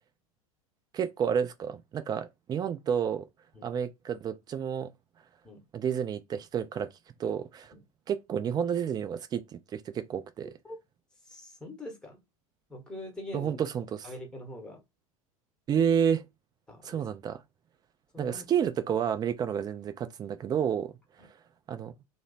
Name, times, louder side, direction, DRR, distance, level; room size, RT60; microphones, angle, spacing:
voice 1, 0.9-3.3 3.6-4.9 5.7-6.9 7.2-7.7 8.1-10.5 13.3-14.1 15.7-16.2 16.8-17.4 18.2-20.9 21.7-21.9, right 8 dB, 20° right, 0.5 m, -30 dB
voice 2, 10.4-10.8 11.3-12.2 12.7-13.6 14.0-14.8 16.7-17.1 18.1-18.8 21.2-21.3, left 1 dB, 5° left, 1.1 m, -44 dB
3.0 x 2.0 x 3.9 m
figure-of-eight pair, 80°, 19 cm